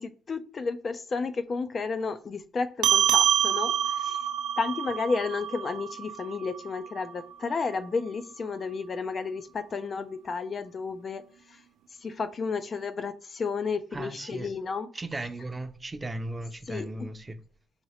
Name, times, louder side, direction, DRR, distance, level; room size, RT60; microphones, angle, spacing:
voice 1, 0.0-4.2 4.6-11.6 12.0-14.9 16.7-16.9, left 4 dB, 40° left, 0.3 m, -32 dB
sound 1, 2.8-7.6, right 10 dB, 80° right, 0.3 m, -27 dB
voice 2, 13.9-14.5 14.9-17.4, right 2 dB, 20° right, 0.5 m, -36 dB
2.9 x 2.8 x 4.2 m
cardioid pair, 90°, 0 cm